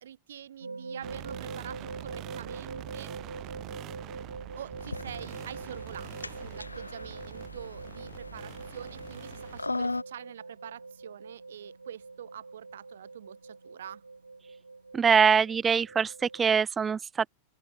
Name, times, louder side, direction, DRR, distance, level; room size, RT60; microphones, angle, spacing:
voice 1, 0.0-3.1 4.6-14.0, right 10 dB, 65° right, 1.6 m, -45 dB
sound 1, 0.6-16.6, right 3 dB, 80° right, 0.5 m, -44 dB
sound 2, 1.0-9.6, right 17 dB, 35° right, 1.9 m, -45 dB
sound 3, 4.8-10.0, left 2 dB, 80° left, 1.1 m, -39 dB
voice 2, 14.9-17.3, right 6 dB, 20° right, 0.5 m, -23 dB
open air
figure-of-eight pair, 90°, 0 cm